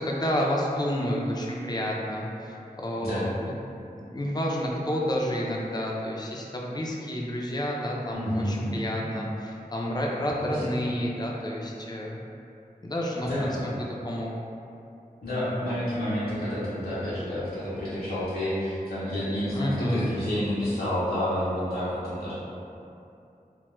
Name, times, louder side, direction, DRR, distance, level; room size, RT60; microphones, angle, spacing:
voice 1, 0.0-3.5 3.9-12.2 12.8-13.7 14.0-14.3 19.5-20.1, equal, 25° left, -2 dB, 0.4 m, -30 dB
voice 2, 8.1-8.7 10.4-10.8 13.3-13.6 15.2-22.3, equal, 80° left, -12 dB, 0.6 m, -29 dB
2.2 x 2.0 x 3.0 m, 2.7 s
wide cardioid pair, 45°, 15 cm